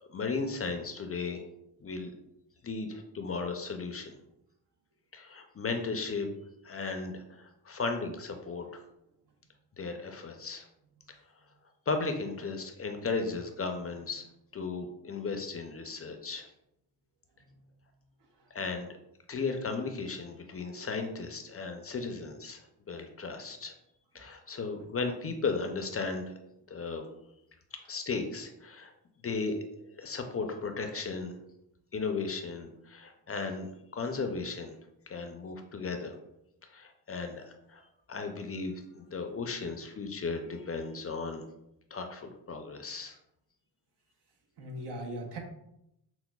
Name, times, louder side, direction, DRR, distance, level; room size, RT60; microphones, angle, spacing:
voice 1, 0.1-1.4 1.8-2.1 2.6-4.2 5.1-6.3 6.6-8.8 9.8-10.6 11.9-14.3 14.5-16.5 18.5-18.9 19.3-23.7 24.1-26.3 26.7-27.1 27.9-28.9 29.2-31.4 31.9-34.8 35.1-36.2 36.7-37.8 38.1-41.4 41.9-43.2, left 4 dB, 35° left, 5 dB, 0.4 m, -35 dB
voice 2, 44.6-45.4, right 1 dB, 70° right, 1 dB, 0.9 m, -41 dB
5.9 x 2.1 x 2.2 m, 0.82 s
cardioid pair, 70°, 43 cm